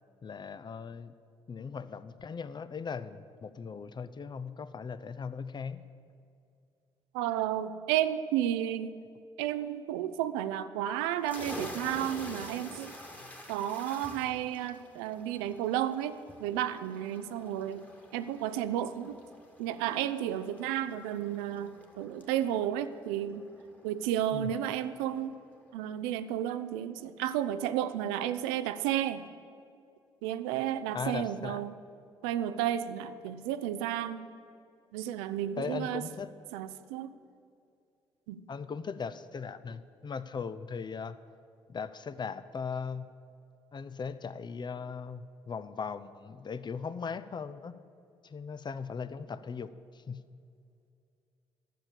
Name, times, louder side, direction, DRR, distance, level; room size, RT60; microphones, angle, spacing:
voice 1, 0.2-1.2 1.5-5.8 24.3-24.5 30.9-31.7 35.6-36.3 38.5-41.2 41.7-43.1 43.7-47.7 48.2-50.2, left 5 dB, 35° left, 13 dB, 0.6 m, -38 dB
voice 2, 7.1-8.9 9.4-12.9 13.5-17.8 18.1-19.2 19.6-23.4 23.8-25.4 25.7-29.2 30.2-31.7 32.2-34.3 34.9-36.0 36.5-37.1 38.3-38.4, right 11 dB, 75° right, 12 dB, 0.5 m, -32 dB
sound 1, 11.2-24.6, left 1 dB, 10° left, 1.8 m, -48 dB
12.0 x 7.1 x 7.5 m, 2.4 s
hypercardioid pair, 45°, 13 cm